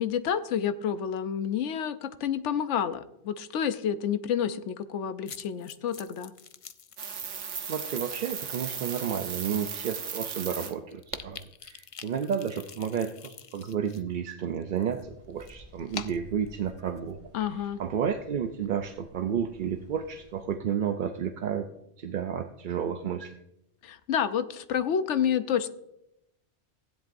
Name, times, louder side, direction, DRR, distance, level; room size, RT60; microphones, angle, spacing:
voice 1, 0.0-6.3 17.3-17.8 23.8-25.7, left 8 dB, 90° left, 12 dB, 1.0 m, -29 dB
sound 1, 5.3-7.7 8.1-8.4 9.1-9.2 9.5-9.6 9.8-14.0 14.3-17.1, left 7 dB, 55° left, 0.3 m, -45 dB
sound 2, 7.0-10.7 11.1-11.2, right 7 dB, 90° right, 1.2 m, -36 dB
voice 2, 7.6-17.2 17.8-21.7 22.0-23.3, right 8 dB, 55° right, 6 dB, 0.6 m, -31 dB
sound 3, 14.9-20.5, left 1 dB, 25° right, 2.3 m, -54 dB
16.0 x 10.5 x 2.6 m, 0.84 s
omnidirectional pair, 1.2 m